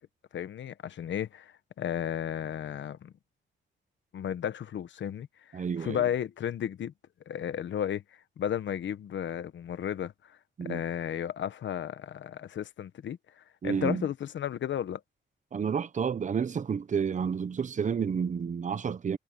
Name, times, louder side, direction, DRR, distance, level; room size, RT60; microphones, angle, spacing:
voice 1, 0.3-3.1 4.1-6.9 7.3-10.4 10.6-15.0, left 10 dB, 70° left, 1.1 m, -34 dB
voice 2, 5.5-6.0 10.6-10.8 13.6-14.1 15.5-19.2, right 6 dB, 40° right, 0.9 m, -30 dB
wide cardioid pair, 140°, 20 cm